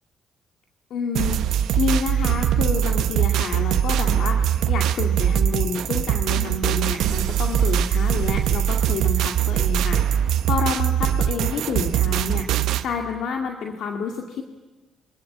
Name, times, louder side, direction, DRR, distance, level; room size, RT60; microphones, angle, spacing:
voice 1, 0.9-14.4, left 5 dB, 75° left, 3 dB, 2.1 m, -29 dB
sound 1, 1.1-12.8, right 10 dB, 85° right, 1.0 m, -22 dB
27.5 x 24.0 x 8.7 m, 1.2 s
cardioid pair, 90°, 0 cm